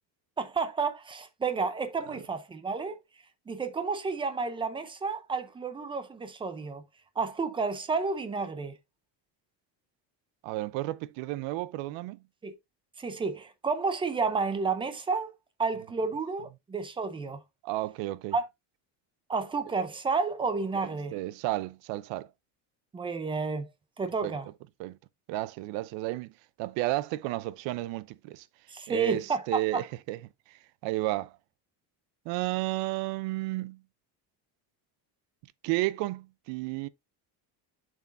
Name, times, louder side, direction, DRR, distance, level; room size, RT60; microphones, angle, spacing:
voice 1, 0.4-3.0 3.5-6.8 7.2-8.8 12.4-12.5 13.0-15.3 15.6-17.4 18.3-18.4 19.3-21.1 22.9-23.7 24.0-24.5 28.7-29.4 29.7-29.8, right 4 dB, 10° right, 0.5 m, -31 dB
voice 2, 10.4-12.2 17.6-18.4 20.7-22.3 24.2-24.4 24.8-25.0 25.3-26.3 26.6-28.5 28.9-30.2 30.5-31.3 32.3-33.8 35.6-36.9, right 17 dB, 70° right, 0.6 m, -32 dB
7.2 x 6.3 x 2.5 m
cardioid pair, 180°, 46 cm